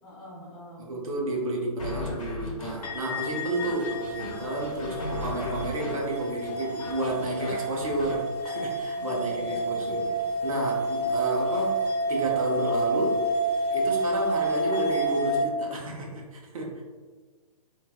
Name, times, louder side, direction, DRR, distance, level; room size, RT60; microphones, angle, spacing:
voice 1, 0.0-0.9 8.9-10.1, equal, 15° left, -7 dB, 0.7 m, -47 dB
voice 2, 0.8-10.1 10.4-11.8 12.1-13.2 13.7-16.8, right 2 dB, 60° right, -2 dB, 0.7 m, -31 dB
sound 1, 1.8-8.2, left 3 dB, 60° left, 1.1 m, -39 dB
sound 2, 2.8-15.4, right 1 dB, 85° left, 0.8 m, -29 dB
3.1 x 2.3 x 2.2 m, 1.4 s
hypercardioid pair, 170°, 20 cm